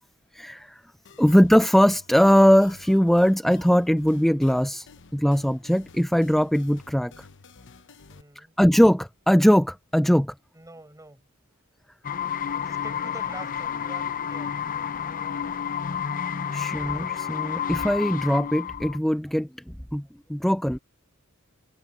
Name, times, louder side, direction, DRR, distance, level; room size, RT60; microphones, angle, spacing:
voice 1, 0.3-0.8 1.2-7.3 8.4-10.3 16.5-19.5 19.9-20.0 20.3-20.8, equal, ahead, 0.3 m, -20 dB
sound 1, 1.1-8.2, left 4 dB, 55° left, 1.0 m, -51 dB
voice 2, 8.1-8.6 10.5-11.3 12.6-14.6, right 2 dB, 15° right, 7.3 m, -45 dB
sound 2, 12.0-19.0, left 8 dB, 40° left, 0.6 m, -30 dB
head